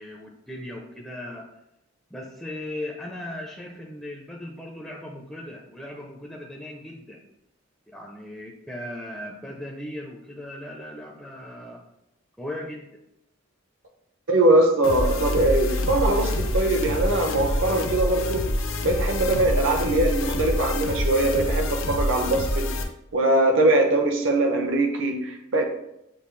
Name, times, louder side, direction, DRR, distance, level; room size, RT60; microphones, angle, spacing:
voice 1, 0.0-1.5 2.1-7.2 7.9-11.8 12.4-12.9, left 1 dB, 5° left, -2 dB, 0.5 m, -37 dB
voice 2, 14.3-18.5 18.8-22.7 23.1-25.6, right 2 dB, 70° right, 3 dB, 0.8 m, -22 dB
sound 1, 14.8-22.8, left 1 dB, 80° left, 0.6 m, -27 dB
7.0 x 2.3 x 3.2 m, 0.84 s
head